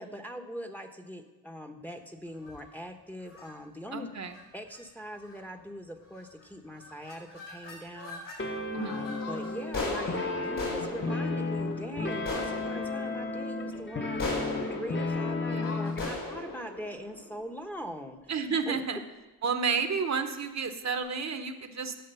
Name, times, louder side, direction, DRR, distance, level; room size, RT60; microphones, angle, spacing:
voice 1, 0.0-4.1 4.5-18.2 18.7-19.0, equal, 5° left, 6 dB, 0.9 m, -42 dB
sound 1, 2.3-2.7 3.3-3.5 4.2-4.4 4.7-4.8 5.2-5.5 6.1-6.4 6.7-8.4 8.8-18.0, left 3 dB, 65° left, 3.7 m, -39 dB
voice 2, 3.9-4.3 8.7-9.1 15.5-15.8 18.3-19.0 19.4-22.0, right 5 dB, 50° right, 8 dB, 0.9 m, -31 dB
sound 2, 8.4-16.1, left 3 dB, 30° left, 1.1 m, -33 dB
10.5 x 4.9 x 6.9 m, 1.1 s
cardioid pair, 65°, 36 cm